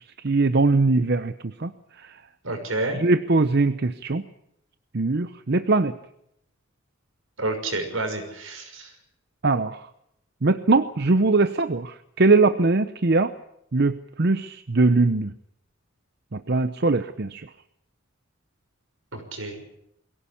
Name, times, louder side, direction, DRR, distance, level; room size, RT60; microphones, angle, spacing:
voice 1, 0.2-1.3 1.6-1.7 3.0-4.2 4.9-5.9 9.4-9.8 10.4-13.3 13.7-15.3 16.3-17.5, right 3 dB, 55° right, 11 dB, 0.8 m, -21 dB
voice 2, 2.4-3.0 7.4-8.9 19.1-19.8, right 2 dB, 80° right, 5 dB, 6.1 m, -30 dB
23.0 x 17.0 x 8.5 m, 0.79 s
head